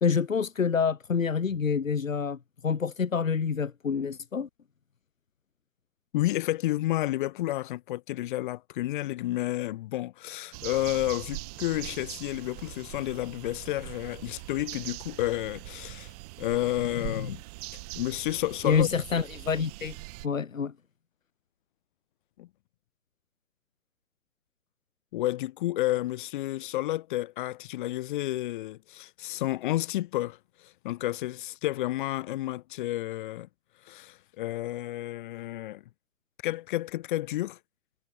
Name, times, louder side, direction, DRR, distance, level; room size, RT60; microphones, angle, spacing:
voice 1, 0.0-2.4 2.6-4.5 17.1-17.3 18.6-20.0 20.2-20.7, left 6 dB, 85° left, 2.0 m, -27 dB
voice 2, 6.1-16.1 16.4-17.4 18.0-18.9 22.4-22.5 25.1-33.5 33.9-35.8 36.4-37.6, left 15 dB, 40° left, 5.2 m, -31 dB
sound 1, 10.5-20.3, right 24 dB, 30° right, 2.6 m, -42 dB
hypercardioid pair, 140°, 39 cm